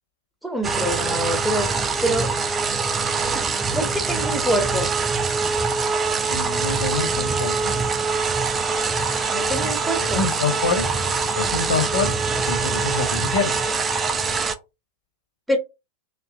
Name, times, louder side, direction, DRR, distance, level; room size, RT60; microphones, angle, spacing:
voice 1, 0.4-1.7 2.0-2.3 3.7-4.9 9.3-10.2 15.5-15.6, equal, ahead, 0.8 m, -25 dB
sound 1, 0.6-14.5, right 4 dB, 20° right, 0.4 m, -24 dB
voice 2, 6.3-7.8 10.0-10.9 11.4-12.1 12.5-13.5, left 4 dB, 60° left, 0.9 m, -26 dB
2.9 x 2.4 x 2.4 m
figure-of-eight pair, 90°, 0 cm